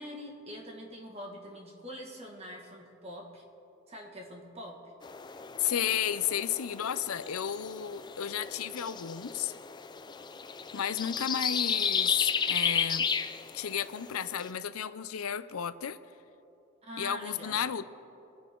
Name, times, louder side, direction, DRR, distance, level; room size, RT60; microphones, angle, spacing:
voice 1, 0.0-3.4 3.9-4.8 16.8-17.6, equal, 30° right, 0 dB, 1.9 m, -44 dB
sound 1, 5.0-14.5, left 6 dB, 20° left, 0.3 m, -34 dB
voice 2, 5.6-9.5 10.7-13.1 13.5-16.0 17.0-17.8, left 9 dB, 85° left, 14 dB, 0.5 m, -33 dB
26.0 x 9.5 x 3.8 m, 2.9 s
head